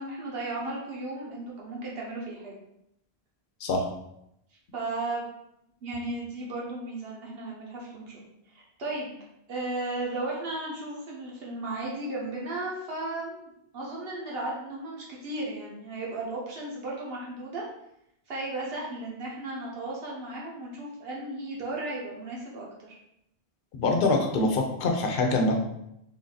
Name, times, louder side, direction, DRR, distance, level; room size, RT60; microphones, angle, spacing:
voice 1, 0.0-2.5 4.7-5.2 5.8-9.1 9.5-17.7 18.3-22.9, right 2 dB, 70° right, -3 dB, 1.3 m, -35 dB
voice 2, 23.8-25.5, left 2 dB, 60° left, 3 dB, 0.8 m, -24 dB
3.6 x 2.6 x 3.8 m, 0.80 s
omnidirectional pair, 1.1 m